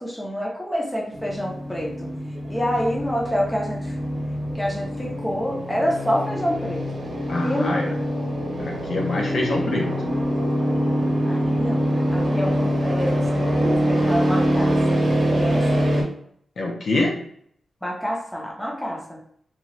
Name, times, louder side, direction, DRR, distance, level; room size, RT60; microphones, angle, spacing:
voice 1, 0.0-2.1 2.5-4.0 4.5-6.9 7.4-7.8 11.3-15.8 17.8-19.2, equal, 5° left, -3 dB, 0.6 m, -27 dB
sound 1, 1.1-16.0, equal, 50° right, 0.8 m, -24 dB
voice 2, 7.3-7.9 8.6-9.9 16.6-17.2, left 2 dB, 60° left, -1 dB, 0.6 m, -25 dB
2.8 x 2.3 x 3.0 m, 0.65 s
wide cardioid pair, 160°, 0 cm